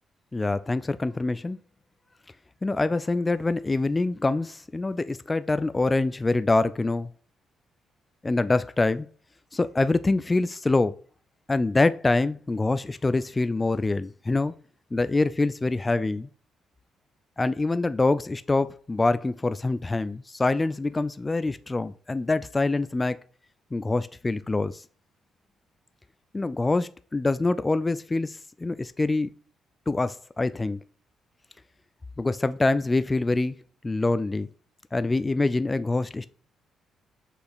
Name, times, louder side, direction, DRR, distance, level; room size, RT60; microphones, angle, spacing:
voice 1, 0.3-1.6 2.6-7.1 8.2-9.1 9.5-10.9 11.5-14.5 14.9-16.3 17.4-23.2 23.7-24.8 26.3-29.3 29.9-30.8 32.2-33.5 33.8-34.5 34.9-36.3, left 2 dB, 20° left, 0.4 m, -25 dB
6.3 x 5.7 x 4.0 m
cardioid pair, 90°, 0 cm